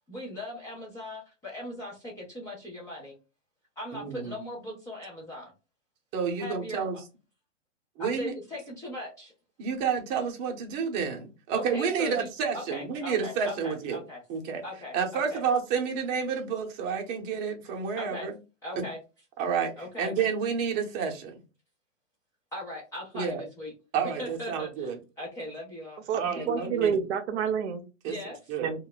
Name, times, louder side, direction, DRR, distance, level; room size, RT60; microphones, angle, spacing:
voice 1, 0.1-3.2 3.8-5.5 6.4-6.8 8.0-9.3 11.5-12.3 12.5-14.2 14.6-15.4 18.0-18.3 18.6-19.0 19.8-20.1 22.5-23.7 24.2-26.8 28.1-28.4, left 1 dB, 10° left, 0.4 m, -39 dB
voice 2, 3.9-4.3 6.1-7.0 8.0-8.3 9.6-14.0 14.3-14.6 14.9-18.3 19.4-21.4 23.1-23.4 23.9-25.0 26.1-27.0 28.0-28.2 28.5-28.7, right 6 dB, 30° right, 0.7 m, -30 dB
voice 3, 26.1-27.8 28.6-28.9, right 7 dB, 65° right, 0.6 m, -28 dB
2.3 x 2.0 x 3.8 m
hypercardioid pair, 135°, 37 cm